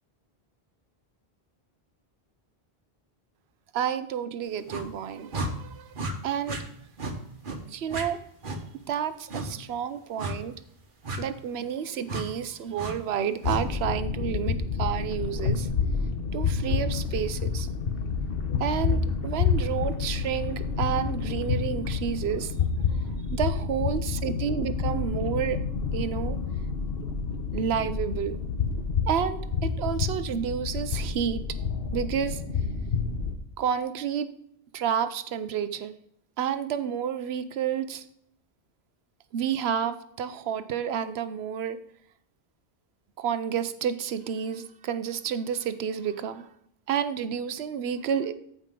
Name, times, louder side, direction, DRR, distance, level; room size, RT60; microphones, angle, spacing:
voice 1, 3.7-5.9 6.2-6.6 7.7-8.2 8.9-10.5 11.2-15.7 16.3-17.7 18.6-22.5 22.9-23.0 23.3-25.6 25.9-26.4 27.5-28.4 29.1-31.4 31.9-32.4 33.6-34.3 34.7-36.0 36.4-38.0 39.3-41.8 43.2-46.5 46.9-48.3, right 8 dB, 80° right, 12 dB, 0.9 m, -30 dB
sound 1, 4.7-4.9 5.3-5.5 5.9-6.1 6.5-6.6 7.0-7.2 7.4-7.6 7.9-8.1 8.4-8.6 9.3-9.5 10.2-10.4 11.0-11.2 12.1-12.3 12.8-12.9 13.4-13.6, right 2 dB, 55° right, 1.3 m, -32 dB
sound 2, 13.4-33.4, left 5 dB, 65° left, 1.2 m, -29 dB
15.0 x 5.2 x 3.7 m, 0.72 s
omnidirectional pair, 1.1 m